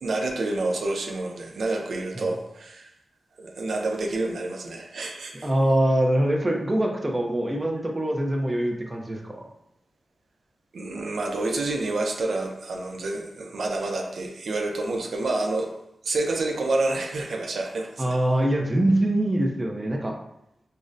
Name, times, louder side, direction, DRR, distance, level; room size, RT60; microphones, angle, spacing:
voice 1, 0.0-2.9 3.4-5.5 10.7-15.7 16.0-18.2, right 2 dB, 75° right, 2 dB, 0.5 m, -28 dB
voice 2, 5.4-9.4 18.0-20.1, right 1 dB, 20° right, 0 dB, 0.5 m, -23 dB
5.2 x 2.1 x 2.5 m, 0.80 s
wide cardioid pair, 125°, 0 cm